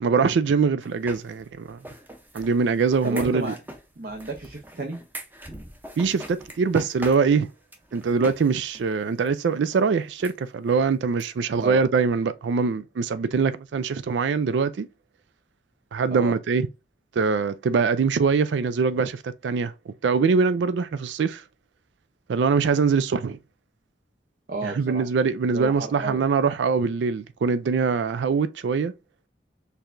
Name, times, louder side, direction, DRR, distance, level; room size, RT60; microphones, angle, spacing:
voice 1, 0.0-1.8 2.3-3.5 6.0-7.5 7.9-14.9 15.9-16.7 17.2-21.4 22.3-23.4 24.6-28.9, right 5 dB, 85° right, 0.4 m, -23 dB
sound 1, 0.8-8.5 8.7-8.8 9.3-9.4 9.7-9.8 10.2-10.3 10.7-10.8 11.2-11.3 11.6-11.7, right 1 dB, 10° right, 0.6 m, -42 dB
voice 2, 3.0-3.6 4.0-5.0 11.6-11.8 16.1-16.3 24.5-25.0 25.5-26.2, right 2 dB, 55° right, 0.7 m, -32 dB
4.6 x 3.4 x 2.5 m
head